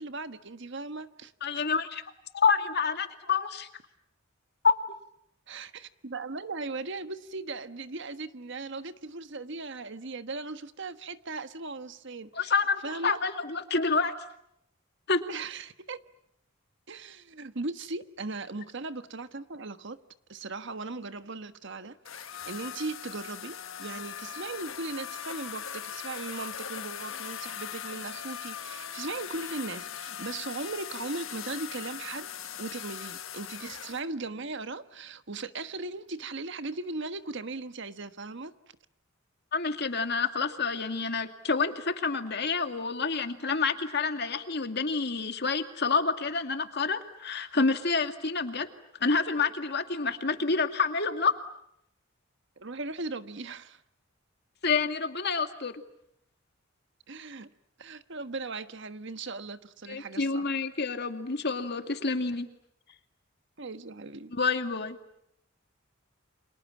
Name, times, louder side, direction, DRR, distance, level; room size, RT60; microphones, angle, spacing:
voice 1, 0.0-1.3 5.5-12.5 12.8-13.2 15.3-16.0 16.9-20.0 20.3-38.5 52.6-53.8 57.1-57.5 57.8-60.5 63.6-64.3, right 3 dB, 65° right, 1.4 m, -38 dB
voice 2, 1.4-2.0 2.3-3.7 4.6-4.7 12.3-14.1 15.1-15.2 39.5-48.7 49.0-51.3 54.6-55.8 59.9-62.5 64.3-65.0, left 4 dB, 55° left, 2.3 m, -28 dB
sound 1, 22.0-34.0, left 9 dB, 80° left, 1.4 m, -40 dB
30.0 x 27.0 x 7.4 m
head